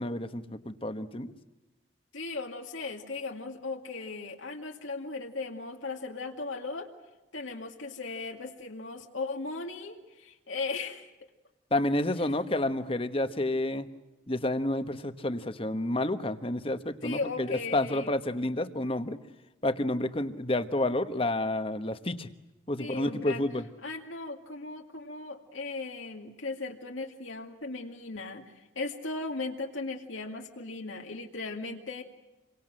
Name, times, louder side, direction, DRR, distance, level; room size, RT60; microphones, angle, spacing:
voice 1, 0.0-1.3 11.7-13.9 14.3-19.2 19.6-22.3 22.7-23.6, left 1 dB, 30° left, 10 dB, 1.2 m, -30 dB
voice 2, 2.1-6.9 7.3-11.1 17.0-18.1 22.8-23.4 23.8-32.0, left 3 dB, 80° left, 2 dB, 2.2 m, -37 dB
28.0 x 24.0 x 7.8 m, 1.0 s
head